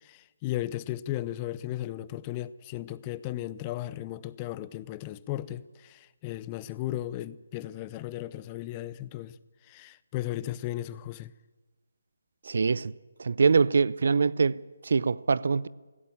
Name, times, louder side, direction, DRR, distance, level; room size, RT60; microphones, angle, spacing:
voice 1, 0.0-9.4 9.7-11.3, left 14 dB, 20° left, 0.6 m, -35 dB
voice 2, 12.5-12.9 13.2-14.6 14.8-15.7, right 5 dB, 55° right, 0.6 m, -23 dB
17.5 x 16.5 x 9.8 m
figure-of-eight pair, 150°, 0 cm